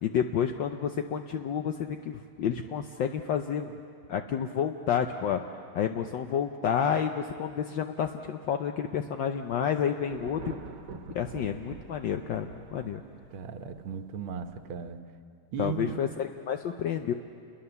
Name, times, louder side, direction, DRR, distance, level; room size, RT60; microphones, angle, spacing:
voice 1, 0.0-3.8 4.1-5.4 5.7-10.6 11.1-13.0 15.6-17.1, left 8 dB, 70° left, 6 dB, 1.4 m, -30 dB
Thunder, 9.5-14.9, right 4 dB, 55° right, 1.8 m, -46 dB
voice 2, 13.3-15.0 15.5-16.0, right 6 dB, 75° right, 8 dB, 1.8 m, -36 dB
28.5 x 22.0 x 6.9 m, 2.4 s
omnidirectional pair, 2.4 m